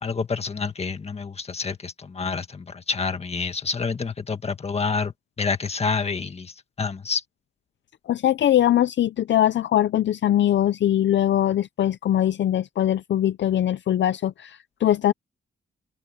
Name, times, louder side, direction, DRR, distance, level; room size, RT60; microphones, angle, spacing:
voice 1, 0.0-7.2, left 4 dB, 30° left, 1.7 m, -28 dB
voice 2, 8.1-15.1, left 11 dB, 65° left, 0.5 m, -21 dB
open air
wide cardioid pair, 165°, 21 cm